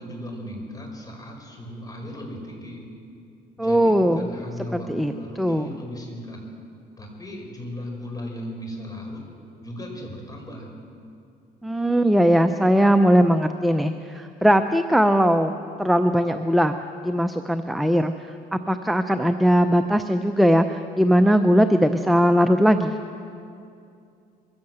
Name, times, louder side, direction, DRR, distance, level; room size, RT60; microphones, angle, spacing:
voice 1, 0.0-2.9 3.6-6.4 7.0-9.2 9.6-10.7, equal, 20° left, 1 dB, 5.4 m, -36 dB
voice 2, 3.6-4.3 4.7-5.1 5.4-5.7 11.6-15.5 15.8-16.7 17.0-18.1 18.5-22.9, equal, ahead, 7 dB, 0.6 m, -19 dB
22.0 x 15.5 x 7.8 m, 2.5 s
cardioid pair, 110°, 17 cm